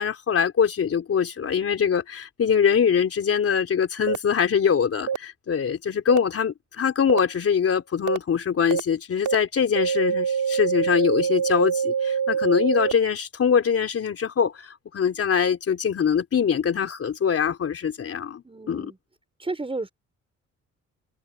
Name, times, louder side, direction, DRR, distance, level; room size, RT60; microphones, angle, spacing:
voice 1, 0.0-18.9, left 7 dB, 50° left, 3.8 m, -23 dB
sound 1, 4.1-4.2 5.1-5.2 6.1-6.2 7.1-7.2 8.1-8.2 8.7-8.8 9.3-9.4 9.8-12.9, right 7 dB, 80° right, 3.1 m, -24 dB
voice 2, 18.4-19.0 19.4-19.9, right 3 dB, 20° right, 5.7 m, -32 dB
cardioid pair, 90°, 30 cm